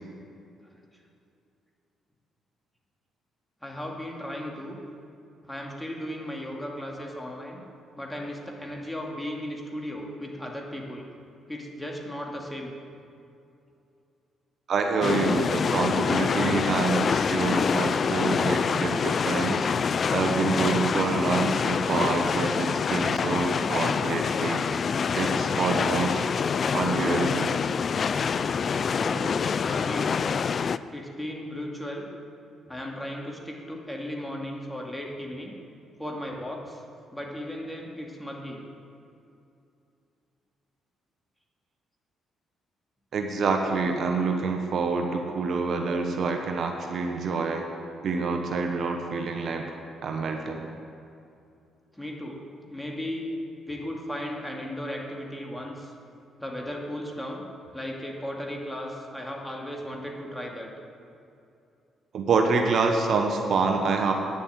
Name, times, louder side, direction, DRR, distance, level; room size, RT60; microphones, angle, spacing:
voice 1, 3.6-4.8 5.5-7.6 8.0-11.1 11.5-12.7 29.0-29.4 29.6-30.1 30.9-32.1 32.7-35.5 36.0-36.8 37.1-38.6 51.9-52.4 52.7-53.3 53.7-55.9 56.4-57.4 57.7-60.7, left 1 dB, 5° left, -1 dB, 2.3 m, -36 dB
voice 2, 14.7-24.6 25.1-26.2 26.7-27.5 43.1-47.6 48.0-49.6 50.0-50.7 62.1-64.1, right 4 dB, 60° right, 3 dB, 1.1 m, -27 dB
sound 1, 15.0-30.8, left 6 dB, 50° left, 0.3 m, -26 dB
9.8 x 7.1 x 8.0 m, 2.6 s
supercardioid pair, 55°, 0 cm